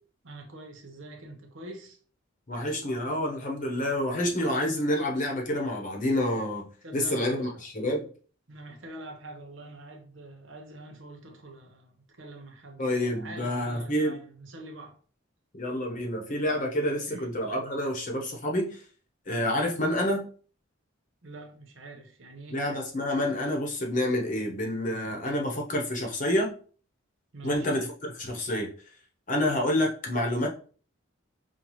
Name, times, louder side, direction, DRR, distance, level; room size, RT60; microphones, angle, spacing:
voice 1, 0.2-2.0 2.5-2.6 6.8-7.5 8.5-15.0 17.1-17.3 21.2-22.6 27.3-27.8 29.4-29.5, right 2 dB, 70° right, 1.0 m, -45 dB
voice 2, 2.5-8.1 12.8-14.1 15.5-18.8 19.3-20.3 22.5-26.6 27.4-28.7 29.3-30.5, left 1 dB, 40° left, 0.9 m, -28 dB
5.5 x 2.3 x 3.1 m
head